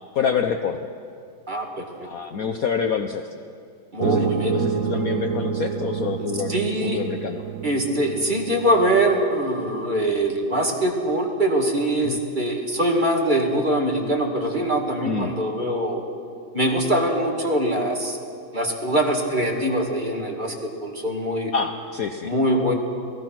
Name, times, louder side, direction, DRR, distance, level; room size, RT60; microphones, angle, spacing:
voice 1, 0.1-0.9 2.0-3.3 4.0-7.4 12.0-12.2 15.0-15.3 21.5-22.3, left 6 dB, 60° left, 6 dB, 1.1 m, -27 dB
voice 2, 1.5-2.1 3.9-4.6 6.5-7.0 7.6-16.0 16.5-18.2 18.5-21.5 22.2-22.7, right 1 dB, 25° right, 1 dB, 2.2 m, -23 dB
sound 1, 4.0-9.2, right 7 dB, 55° right, 1.0 m, -28 dB
28.0 x 18.5 x 6.0 m, 2.4 s
omnidirectional pair, 2.1 m